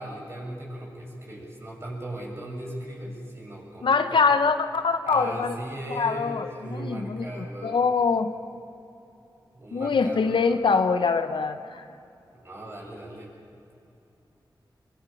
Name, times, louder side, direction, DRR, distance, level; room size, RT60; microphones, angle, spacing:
voice 1, 0.0-4.2 5.0-7.9 9.5-10.6 12.3-13.3, right 1 dB, 30° right, -2 dB, 6.4 m, -37 dB
voice 2, 3.8-5.5 5.9-8.3 9.7-11.8, left 5 dB, 80° left, 9 dB, 1.0 m, -24 dB
25.5 x 23.5 x 5.7 m, 2.8 s
wide cardioid pair, 85°, 8 cm